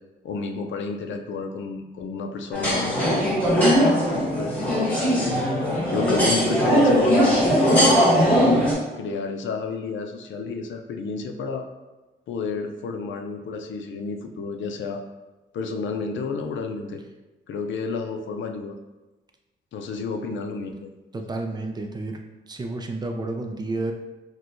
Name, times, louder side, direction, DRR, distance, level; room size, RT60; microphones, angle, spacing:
voice 1, 0.2-4.5 5.9-8.3 9.0-11.7 12.3-15.0 15.5-17.0 17.5-18.8 19.7-20.9, left 4 dB, 75° left, 5 dB, 0.5 m, -31 dB
sound 1, 2.5-8.7, equal, 5° left, 1.3 m, -20 dB
voice 2, 21.1-22.2 22.5-23.9, right 2 dB, 20° right, 3 dB, 0.4 m, -30 dB
6.0 x 2.2 x 2.6 m, 1.1 s
wide cardioid pair, 135°, 20 cm